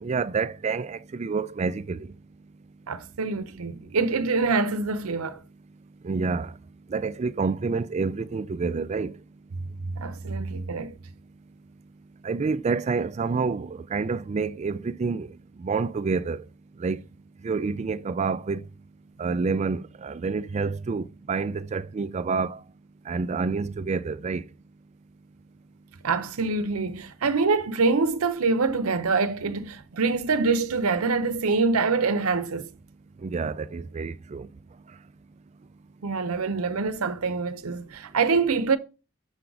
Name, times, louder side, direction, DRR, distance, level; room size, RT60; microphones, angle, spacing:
voice 1, 0.0-2.0 6.0-6.5 6.9-9.1 12.2-15.3 15.6-16.4 16.8-17.0 17.4-18.6 19.2-22.6 23.1-24.4 33.2-34.5, right 4 dB, 30° right, 0.3 m, -28 dB
voice 2, 2.9-5.4 9.9-10.9 26.0-32.7 36.0-38.8, right 4 dB, 85° right, 0.7 m, -25 dB
6.9 x 3.9 x 4.7 m
head